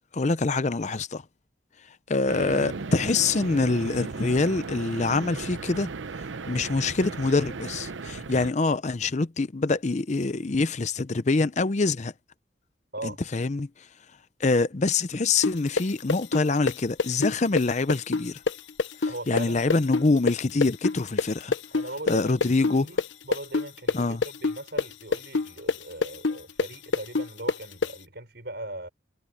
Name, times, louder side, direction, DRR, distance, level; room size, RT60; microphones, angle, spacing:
voice 1, 0.1-1.2 2.1-5.9 6.5-12.1 13.0-13.7 14.4-18.4 19.3-21.5 22.1-22.9 23.9-24.2, left 3 dB, 35° left, 0.5 m, -25 dB
sound 1, 2.3-8.5, right 4 dB, 80° right, 0.7 m, -36 dB
sound 2, 15.4-23.1 23.3-27.9, left 4 dB, 80° left, 0.9 m, -25 dB
voice 2, 19.1-19.8 21.7-23.0 23.2-28.9, right 1 dB, 60° right, 6.3 m, -39 dB
head